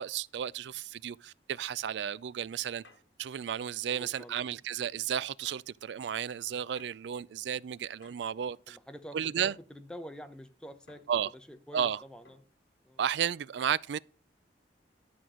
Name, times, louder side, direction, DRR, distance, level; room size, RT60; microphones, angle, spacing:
voice 1, 0.0-2.8 3.2-8.8 9.1-9.5 11.1-11.3 11.7-12.0 13.0-14.0, right 8 dB, 80° right, 0.3 m, -33 dB
sound 1, 2.8-3.1 4.2-4.5 5.4-5.8 6.8-7.1 8.0-8.3 9.5-9.7 10.9-11.3 12.2-12.6, left 3 dB, 85° left, 1.8 m, -60 dB
voice 2, 3.9-4.6 8.7-11.0 11.3-12.4 12.8-13.0, equal, 5° left, 0.7 m, -47 dB
11.5 x 6.1 x 3.7 m
head